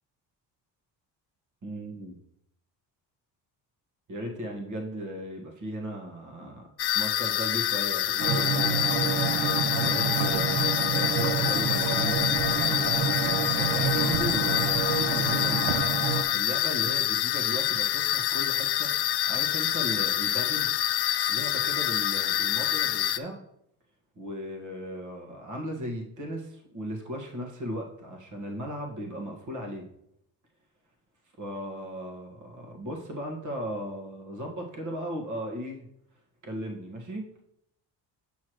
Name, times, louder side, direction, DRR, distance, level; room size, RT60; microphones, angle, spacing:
voice 1, 1.6-2.2 4.1-6.6 6.9-12.9 13.6-15.8 16.1-20.7 21.3-23.4 24.2-29.9 31.4-35.9 36.4-37.3, equal, 45° right, 1 dB, 1.8 m, -37 dB
sound 1, 6.8-23.2, left 13 dB, 65° left, 0.7 m, -27 dB
sound 2, 8.2-16.2, right 6 dB, 75° right, 1.0 m, -28 dB
8.3 x 6.5 x 3.1 m, 0.75 s
cardioid pair, 105°, 43 cm